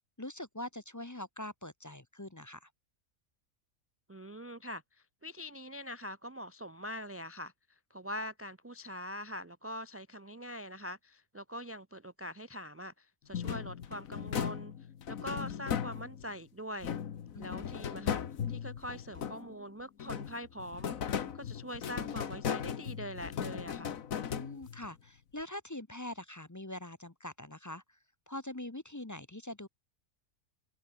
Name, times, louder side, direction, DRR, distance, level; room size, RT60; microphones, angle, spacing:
voice 1, 0.0-2.7 17.3-17.8 24.3-28.0 28.3-29.7, left 1 dB, 15° left, 0.8 m, -43 dB
voice 2, 4.1-4.8 5.2-7.5 7.9-14.7 15.1-16.9 17.4-18.2 18.5-24.0, equal, 25° right, 0.3 m, -43 dB
sound 1, 13.3-16.4 16.8-19.6 20.0-24.9, left 8 dB, 80° left, 1.6 m, -37 dB
omnidirectional pair, 1.4 m